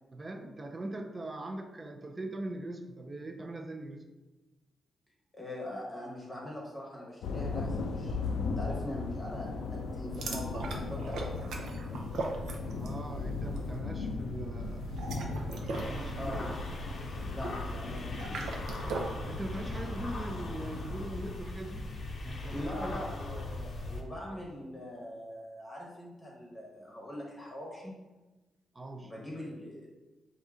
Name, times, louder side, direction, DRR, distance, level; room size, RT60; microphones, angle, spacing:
voice 1, 0.1-4.1 12.8-15.1 15.7-16.5 19.2-21.9 22.2-23.1 28.7-29.1, right 1 dB, 25° right, 5 dB, 0.4 m, -41 dB
voice 2, 5.3-11.8 16.2-16.5 17.3-18.4 22.5-27.9 29.0-29.9, left 1 dB, 15° left, -3 dB, 1.0 m, -42 dB
sound 1, 7.2-21.1, left 3 dB, 90° left, 0.4 m, -38 dB
sound 2, 10.1-13.0 13.3-13.6 14.8-19.2, right 3 dB, 85° right, 0.6 m, -40 dB
sound 3, 15.7-24.0, left 2 dB, 45° left, 0.6 m, -39 dB
4.8 x 2.7 x 3.6 m, 1.1 s
cardioid pair, 135°, 0 cm